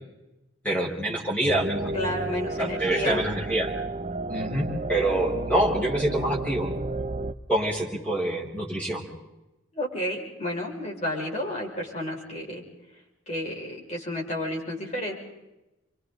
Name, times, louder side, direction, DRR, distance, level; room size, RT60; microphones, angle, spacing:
voice 1, 0.6-1.9 2.6-3.7 4.3-6.7 7.5-9.0, right 1 dB, 5° left, -3 dB, 4.9 m, -26 dB
sound 1, 1.5-7.3, right 2 dB, 30° right, 0.8 m, -32 dB
voice 2, 1.9-3.3 9.7-12.6 13.3-15.1, left 1 dB, 35° left, -2 dB, 5.9 m, -31 dB
29.0 x 24.5 x 4.0 m, 0.96 s
head